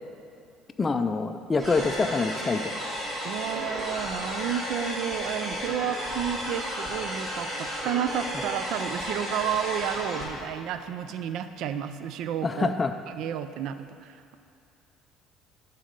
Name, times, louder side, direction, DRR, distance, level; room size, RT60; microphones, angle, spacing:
voice 1, 0.8-2.8 12.4-12.9, left 4 dB, 20° left, 6 dB, 0.4 m, -26 dB
sound 1, 1.6-10.2, equal, 30° right, 2.1 m, -33 dB
voice 2, 3.2-12.7 13.1-14.4, right 9 dB, 65° right, 10 dB, 0.4 m, -31 dB
10.0 x 4.1 x 6.6 m, 2.5 s
cardioid pair, 130°, 0 cm